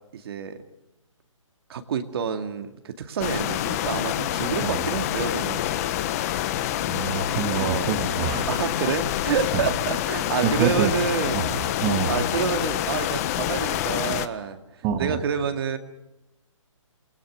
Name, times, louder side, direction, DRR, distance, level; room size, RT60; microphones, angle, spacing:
voice 1, 0.1-0.6 1.7-5.6 7.5-7.9 8.5-11.5 12.1-15.8, right 7 dB, 45° right, 7 dB, 2.3 m, -28 dB
sound 1, 3.2-14.3, left 12 dB, 30° left, 1.2 m, -27 dB
voice 2, 6.8-8.5 9.5-9.6 10.4-10.9 11.3-12.2 14.8-15.2, right 7 dB, 20° right, 6 dB, 2.2 m, -26 dB
28.5 x 20.5 x 6.4 m, 0.90 s
hypercardioid pair, 150°, 17 cm